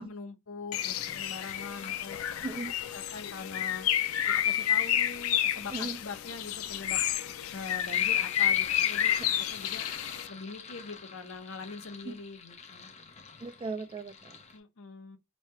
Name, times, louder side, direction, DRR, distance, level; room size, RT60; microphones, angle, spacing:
voice 1, 0.0-2.2 2.9-3.9 4.5-7.0 7.5-9.9 10.3-12.9 14.5-15.2, left 4 dB, 70° left, 0.8 m, -43 dB
Bird, 0.7-10.3, left 10 dB, 90° left, 0.4 m, -30 dB
Sink (filling or washing), 1.0-2.5 3.6-14.6, left 5 dB, 35° left, 0.6 m, -47 dB
voice 2, 2.4-2.7 5.7-6.0 9.2-9.3 12.0-12.1 13.4-14.4, right 3 dB, 25° right, 0.3 m, -37 dB
3.3 x 2.7 x 4.4 m
head